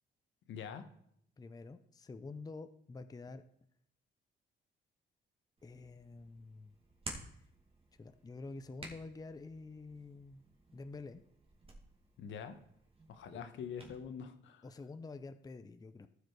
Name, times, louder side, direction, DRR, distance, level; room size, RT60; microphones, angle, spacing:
voice 1, 0.5-0.8 12.2-12.6 13.1-14.7, left 7 dB, 75° left, 8 dB, 1.1 m, -44 dB
voice 2, 1.4-3.4 5.6-6.7 8.0-10.4 10.7-11.2 13.3-13.4 14.6-16.1, left 3 dB, 20° left, 10 dB, 0.6 m, -48 dB
Hands, 5.6-14.0, right 2 dB, 30° right, 2.3 m, -53 dB
14.0 x 5.1 x 4.7 m, 0.71 s
cardioid pair, 90°, 20 cm